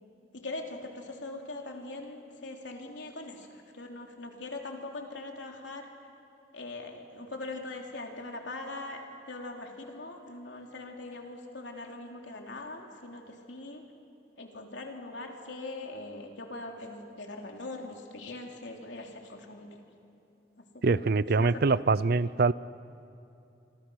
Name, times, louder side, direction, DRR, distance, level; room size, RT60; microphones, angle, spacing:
voice 1, 0.3-5.9 6.5-13.8 14.4-19.8 20.6-21.8, left 2 dB, 85° left, 2 dB, 3.3 m, -42 dB
voice 2, 20.8-22.5, right 4 dB, 60° right, 19 dB, 0.5 m, -24 dB
28.5 x 25.5 x 6.5 m, 2.7 s
head